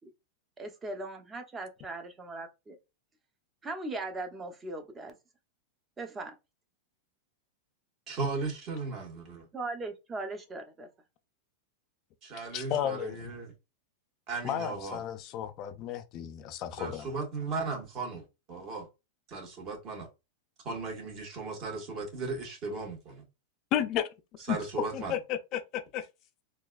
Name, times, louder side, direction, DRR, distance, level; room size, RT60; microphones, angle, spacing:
voice 1, 0.6-2.8 3.6-5.2 6.0-6.3 9.5-10.9, right 2 dB, 20° right, 0.8 m, -39 dB
voice 2, 8.1-9.5 12.2-13.5 14.3-15.0 16.8-18.9 19.3-20.1 20.6-23.2 24.5-25.1, right 4 dB, 45° right, 1.6 m, -36 dB
voice 3, 12.5-13.3 14.4-17.1 23.7-24.1 24.5-24.6 24.9-26.1, left 10 dB, 45° left, 0.4 m, -33 dB
3.9 x 2.4 x 2.4 m
hypercardioid pair, 120°, 0 cm